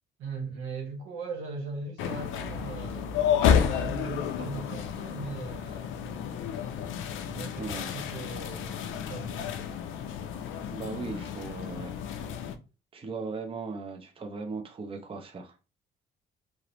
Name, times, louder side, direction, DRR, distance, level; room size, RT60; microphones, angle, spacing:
voice 1, 0.2-3.1 3.5-6.2 7.3-9.8, right 4 dB, 90° right, 0.9 m, -39 dB
sound 1, 2.0-12.5, left 8 dB, 80° left, 0.4 m, -31 dB
voice 2, 7.6-7.9 10.7-11.9 12.9-15.6, right 4 dB, 30° right, 0.5 m, -37 dB
2.5 x 2.0 x 2.9 m
cardioid pair, 90°, 20 cm